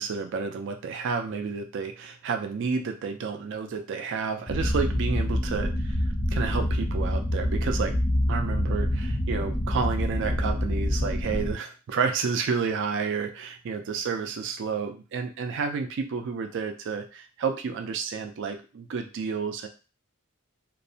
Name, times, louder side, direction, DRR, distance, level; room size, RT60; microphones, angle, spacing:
voice 1, 0.0-8.0 8.3-19.7, right 5 dB, 55° right, 5 dB, 0.4 m, -30 dB
sound 1, 4.5-11.5, left 1 dB, 15° left, 0.4 m, -26 dB
2.5 x 2.0 x 2.6 m, 0.33 s
head